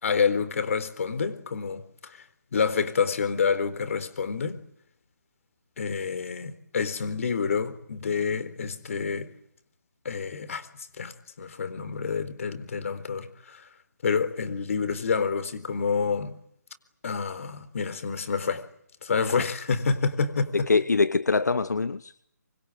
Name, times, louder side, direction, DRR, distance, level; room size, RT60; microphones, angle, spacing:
voice 1, 0.0-2.2 2.5-4.6 5.8-9.3 10.0-10.7 11.0-13.7 14.0-16.3 17.0-18.6 19.0-20.5, left 5 dB, 50° left, 4.0 m, -28 dB
voice 2, 20.5-22.2, left 4 dB, 75° left, 1.2 m, -24 dB
26.5 x 25.0 x 9.0 m
figure-of-eight pair, 150°, 9 cm